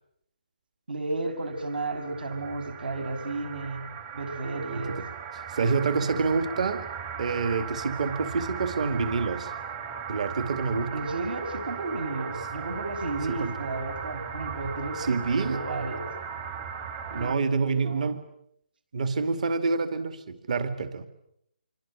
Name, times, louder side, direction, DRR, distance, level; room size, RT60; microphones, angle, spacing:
voice 1, 0.9-3.9 4.1-5.0 10.9-16.1 17.1-18.2, right 2 dB, 65° right, 7 dB, 6.7 m, -33 dB
sound 1, 1.4-17.4, right 7 dB, 20° right, 1.5 m, -38 dB
voice 2, 5.5-6.9 7.2-9.5 10.1-10.9 13.3-13.6 15.0-15.6 17.1-18.2 18.9-21.1, right 4 dB, 45° right, 10 dB, 2.4 m, -27 dB
27.0 x 24.0 x 8.9 m, 0.73 s
hypercardioid pair, 170°, 6 cm